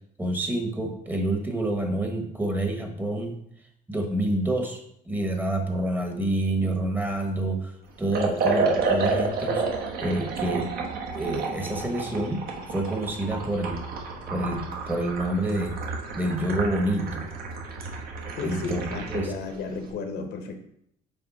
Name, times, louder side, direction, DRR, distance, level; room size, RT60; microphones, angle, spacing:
voice 1, 0.2-3.3 3.9-4.8 5.1-7.7 8.0-9.6 10.0-10.7 11.1-13.9 14.3-15.8 16.1-17.3 18.4-19.3, right 1 dB, 10° right, 4 dB, 1.0 m, -28 dB
Liquid, 8.1-19.3, right 4 dB, 65° right, 1.2 m, -30 dB
voice 2, 18.4-20.6, left 4 dB, 75° left, 6 dB, 1.0 m, -33 dB
5.8 x 4.3 x 4.1 m, 0.72 s
cardioid pair, 110°, 17 cm